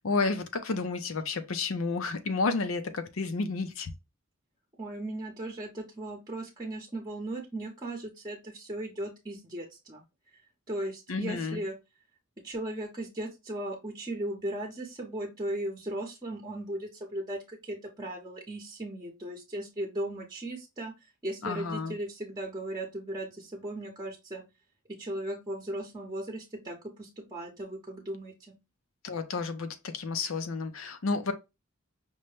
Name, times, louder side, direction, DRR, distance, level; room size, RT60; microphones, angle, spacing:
voice 1, 0.0-3.9 11.1-11.6 21.4-21.9 29.0-31.3, left 4 dB, 75° left, 0.6 m, -31 dB
voice 2, 4.8-10.0 10.7-11.7 12.4-20.9 21.2-24.4 24.9-28.3, right 1 dB, 20° right, 0.8 m, -37 dB
5.4 x 2.2 x 3.2 m
head